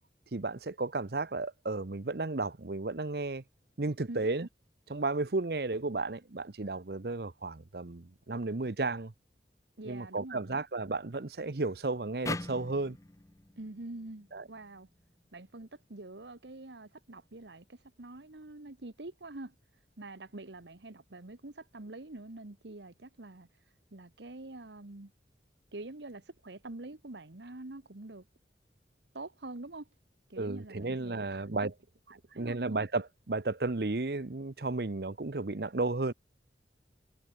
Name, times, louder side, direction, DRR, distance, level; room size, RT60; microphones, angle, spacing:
voice 1, 0.3-3.4 3.8-4.5 4.9-9.1 9.9-13.0 14.3-14.4 30.4-31.7 32.4-36.1, right 3 dB, 60° right, 0.9 m, -33 dB
voice 2, 9.8-10.6 13.6-14.9 15.3-19.5 20.0-23.5 23.9-25.1 25.7-28.2 29.1-29.9 30.3-31.7 32.1-32.8, right 2 dB, 80° right, 1.4 m, -45 dB
sound 1, 12.3-15.5, left 2 dB, 20° left, 0.7 m, -42 dB
head